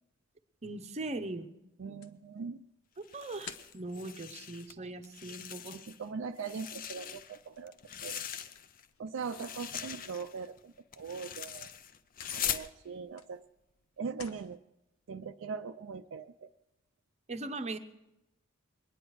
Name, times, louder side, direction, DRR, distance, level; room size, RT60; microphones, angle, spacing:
voice 1, 0.6-1.5 3.0-5.8 17.3-17.8, right 2 dB, 30° right, 8 dB, 0.8 m, -40 dB
voice 2, 1.8-2.6 5.7-7.7 8.0-8.2 9.0-11.7 12.4-13.4 14.0-14.6 15.1-16.5, right 5 dB, 65° right, 7 dB, 0.4 m, -40 dB
sound 1, 2.0-5.7 6.0-9.2 9.9-10.0 10.5-10.6 11.0-11.5 11.9-13.9 14.2-14.6, left 6 dB, 75° left, 0.8 m, -51 dB
sound 2, 3.0-4.7 5.0-6.0 6.4-8.9 9.2-12.7, left 9 dB, 40° left, 0.5 m, -41 dB
22.5 x 9.8 x 4.7 m, 0.90 s
head